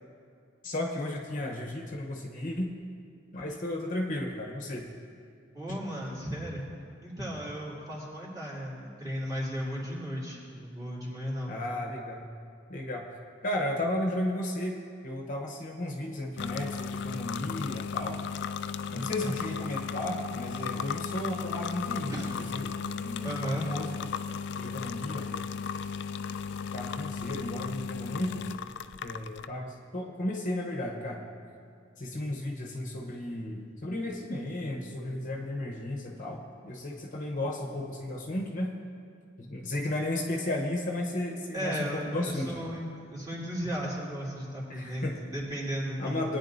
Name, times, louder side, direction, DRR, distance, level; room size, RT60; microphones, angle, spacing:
voice 1, 0.6-2.7 3.3-4.9 5.7-5.8 11.5-12.3 12.7-13.2 13.4-18.3 18.9-23.9 24.6-25.3 26.7-28.5 29.0-31.2 32.0-38.7 39.4-42.5 44.7-45.2 46.0-46.4, left 1 dB, 45° left, 0 dB, 0.9 m, -34 dB
voice 2, 5.5-6.6 7.0-11.5 18.9-19.3 22.1-22.3 23.2-23.7 41.5-46.4, equal, 20° right, -6 dB, 2.6 m, -35 dB
sound 1, 16.4-29.5, left 6 dB, 60° left, 0.3 m, -35 dB
20.0 x 9.6 x 2.7 m, 2.4 s
head